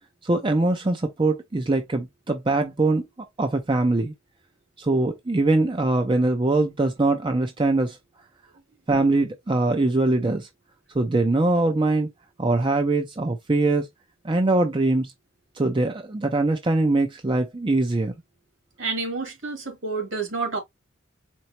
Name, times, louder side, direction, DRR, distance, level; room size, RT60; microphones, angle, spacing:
voice 1, 0.2-4.1 4.8-8.0 8.9-10.5 10.9-12.1 12.4-13.9 14.2-15.1 15.5-18.1, right 2 dB, 25° right, 0.5 m, -22 dB
voice 2, 18.8-20.6, right 4 dB, 65° right, 2.1 m, -29 dB
4.5 x 3.9 x 2.8 m
head